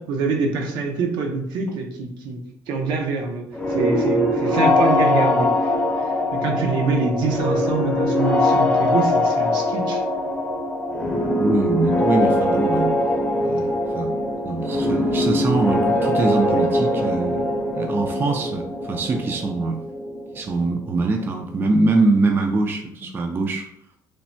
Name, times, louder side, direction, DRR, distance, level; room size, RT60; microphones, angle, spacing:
voice 1, 0.0-2.4 2.7-3.4 3.7-10.0 23.0-23.1, right 4 dB, 75° right, 3 dB, 0.6 m, -25 dB
sound 1, 3.5-21.2, left 1 dB, 20° left, 0.6 m, -22 dB
voice 2, 11.4-13.0 13.4-14.1 14.4-19.8 20.3-23.7, right 3 dB, 30° right, 4 dB, 0.3 m, -23 dB
3.2 x 2.1 x 2.6 m, 0.72 s
cardioid pair, 105°, 8 cm